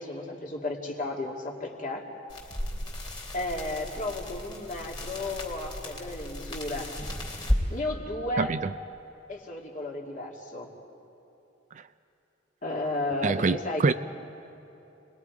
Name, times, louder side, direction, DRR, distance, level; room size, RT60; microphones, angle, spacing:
voice 1, 0.0-2.0 3.3-6.9 7.7-8.5 9.3-10.7 12.6-13.8, left 2 dB, 40° left, -1 dB, 2.5 m, -33 dB
sound 1, 2.3-7.6, left 1 dB, 25° left, 2.9 m, -34 dB
voice 2, 13.2-13.9, right 4 dB, 40° right, 11 dB, 0.4 m, -24 dB
29.0 x 20.5 x 4.8 m, 3.0 s
head